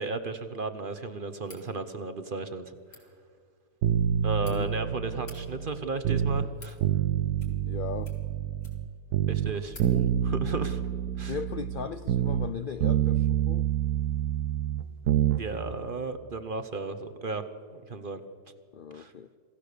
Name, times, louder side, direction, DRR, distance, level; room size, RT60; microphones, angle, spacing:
voice 1, 0.0-2.7 4.2-6.8 9.3-10.9 11.2-11.4 15.3-17.4 17.7-18.2 18.9-19.1, right 3 dB, 40° right, 10 dB, 1.0 m, -34 dB
sound 1, 1.4-1.7 2.8-3.0 4.0-4.6 5.1-5.4 6.2-6.8 7.3-7.7 8.0-9.0 9.3-9.4 9.7-9.9, left 3 dB, 60° left, 3.1 m, -51 dB
sound 2, 3.8-6.5 6.8-8.9 9.1-12.5 12.8-15.4 15.7-15.8, right 10 dB, 80° right, 1.3 m, -27 dB
voice 2, 7.5-8.1 11.2-13.7 18.7-19.3, left 6 dB, 80° left, 11 dB, 0.4 m, -38 dB
27.0 x 16.0 x 6.7 m, 2.1 s
omnidirectional pair, 1.7 m